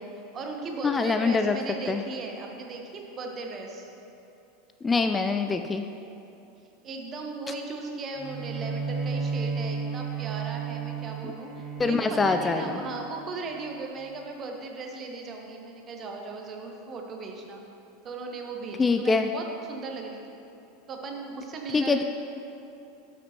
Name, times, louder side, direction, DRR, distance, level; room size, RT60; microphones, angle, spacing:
voice 1, 0.3-3.9 6.8-17.6 18.0-20.4 20.9-22.0, right 3 dB, 35° right, 2 dB, 1.1 m, -37 dB
voice 2, 0.8-1.6 1.9-2.0 4.8-5.8 11.8-12.8 18.8-19.3 21.7-22.0, left 4 dB, 20° left, 7 dB, 0.3 m, -24 dB
Bowed string instrument, 8.1-13.6, right 5 dB, ahead, 1.1 m, -33 dB
12.0 x 6.1 x 3.0 m, 2.8 s
figure-of-eight pair, 85°, 0 cm